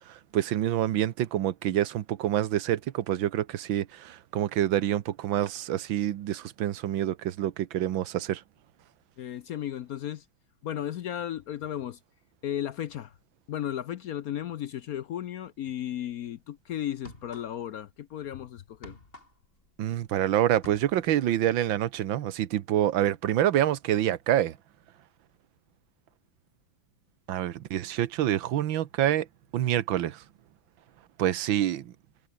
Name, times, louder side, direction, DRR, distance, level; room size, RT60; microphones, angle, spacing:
voice 1, 0.1-8.4 19.8-24.6 27.3-29.3 29.5-30.2 31.2-31.9, right 12 dB, 85° right, 1.7 m, -27 dB
voice 2, 9.2-10.3 10.6-12.0 12.4-13.1 13.5-19.0, left 11 dB, 65° left, 0.9 m, -35 dB
sound 1, 16.1-16.3 16.9-17.8 18.1-20.2 20.5-21.2, left 2 dB, 25° left, 4.8 m, -49 dB
omnidirectional pair, 2.1 m